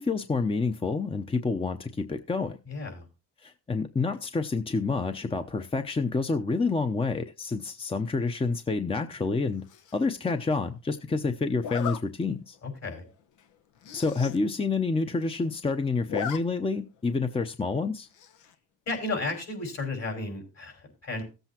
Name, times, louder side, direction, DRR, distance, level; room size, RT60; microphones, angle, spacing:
voice 1, 0.0-2.6 3.4-9.6 9.9-12.6 13.9-18.1, left 4 dB, 20° left, 0.7 m, -28 dB
voice 2, 2.7-3.1 12.6-13.0 18.9-21.3, left 3 dB, 60° left, 5.5 m, -33 dB
Zipper (clothing), 9.7-10.1 11.6-12.0 12.6-12.7 13.1-13.2 13.4-13.5 13.8-14.4 14.7-14.8 15.0-15.6 15.9-16.4 16.7-16.8 18.1-18.5, left 8 dB, 80° left, 0.9 m, -36 dB
16.5 x 7.9 x 2.9 m
cardioid pair, 90°, 30 cm